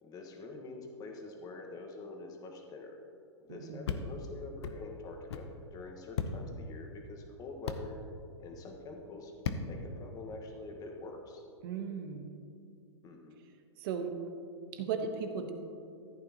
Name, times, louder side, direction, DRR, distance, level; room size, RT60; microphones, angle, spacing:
voice 1, 0.0-3.0 3.4-7.9 8.4-9.3 9.6-11.4 13.0-13.4, left 3 dB, 25° left, 2 dB, 1.5 m, -46 dB
voice 2, 3.5-4.0 11.6-12.3 13.8-14.2 14.7-15.5, right 6 dB, 50° right, 6 dB, 1.1 m, -37 dB
sound 1, 3.8-4.0 4.6-4.8 5.3-5.5 6.2-6.3 7.7-7.8 9.4-9.6, left 6 dB, 65° left, 0.8 m, -34 dB
14.5 x 8.8 x 2.9 m, 2.5 s
hypercardioid pair, 125°, 15 cm